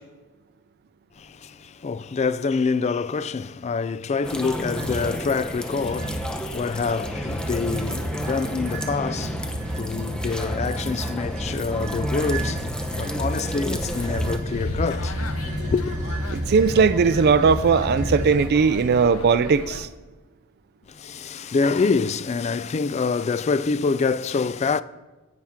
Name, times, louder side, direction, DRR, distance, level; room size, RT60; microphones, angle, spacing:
voice 1, 1.2-15.2 15.6-15.9 20.9-24.8, left 4 dB, 30° left, 0.3 m, -26 dB
sound 1, 4.2-14.4, equal, 5° left, 0.7 m, -33 dB
sound 2, 4.7-5.2 5.8-6.4 7.0-19.0, right 1 dB, 35° right, 1.5 m, -31 dB
sound 3, 13.8-19.9, left 3 dB, 80° left, 0.7 m, -36 dB
voice 2, 16.3-19.9, right 5 dB, 50° right, 0.4 m, -19 dB
17.0 x 5.9 x 3.6 m
head